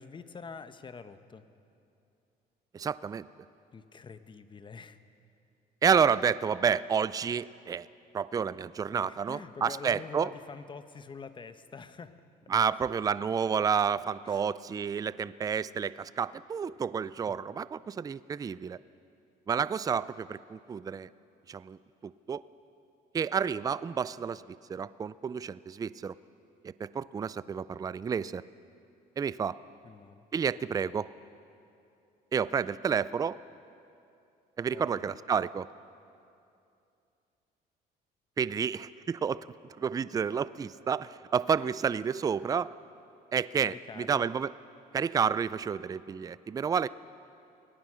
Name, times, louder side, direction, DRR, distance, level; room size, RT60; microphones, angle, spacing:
voice 1, 0.0-1.4 3.7-5.0 9.1-12.1 14.2-14.4 29.8-30.2 34.7-35.2 43.6-44.3, left 5 dB, 30° left, 11 dB, 1.0 m, -46 dB
voice 2, 2.7-3.3 5.8-7.9 8.1-10.3 12.5-18.8 19.5-21.1 21.5-21.8 22.0-22.4 23.1-26.1 26.6-28.4 29.2-29.6 30.3-31.1 32.3-33.4 34.6-35.7 38.4-42.7 43.3-44.5 44.9-46.9, right 6 dB, 20° right, 17 dB, 0.4 m, -30 dB
24.0 x 17.5 x 6.3 m, 2.6 s
cardioid pair, 110°, 17 cm